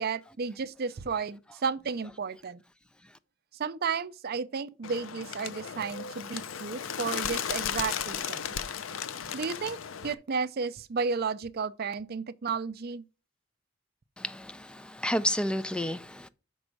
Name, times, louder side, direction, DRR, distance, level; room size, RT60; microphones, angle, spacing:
voice 1, 0.0-2.6 3.5-8.5 9.3-13.0, right 5 dB, 50° right, 0.5 m, -33 dB
Bird, 4.8-10.1, left 8 dB, 85° left, 0.6 m, -35 dB
voice 2, 14.2-16.3, equal, 5° left, 0.4 m, -31 dB
6.1 x 5.4 x 6.2 m
head